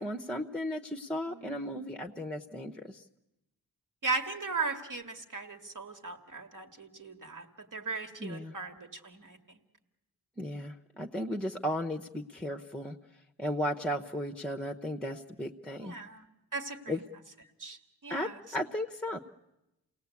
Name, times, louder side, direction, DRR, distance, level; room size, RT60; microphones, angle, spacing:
voice 1, 0.0-3.0 8.2-8.5 10.4-13.0 13.4-16.0 16.9-17.0 18.1-19.2, equal, 5° left, 3 dB, 0.9 m, -35 dB
voice 2, 1.3-2.1 4.0-9.6 15.8-16.3 16.5-17.0 17.6-18.4, right 4 dB, 55° right, 6 dB, 2.0 m, -38 dB
29.0 x 18.5 x 8.4 m, 0.94 s
wide cardioid pair, 115°, 38 cm